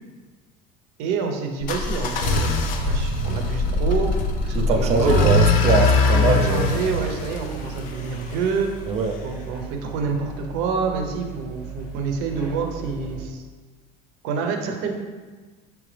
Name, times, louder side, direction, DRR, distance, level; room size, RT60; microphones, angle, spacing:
voice 1, 1.0-4.1 4.4-5.3 6.1-8.7 9.2-13.4 14.2-14.9, right 5 dB, 70° right, 4 dB, 0.7 m, -27 dB
sound 1, 1.6-8.5, left 3 dB, 45° left, 0.5 m, -22 dB
voice 2, 4.5-6.8 8.9-9.1, right 4 dB, 35° right, 4 dB, 0.4 m, -22 dB
sound 2, 6.2-13.3, right 7 dB, 5° right, 0.8 m, -37 dB
4.9 x 3.4 x 3.2 m, 1.3 s
cardioid pair, 150°, 19 cm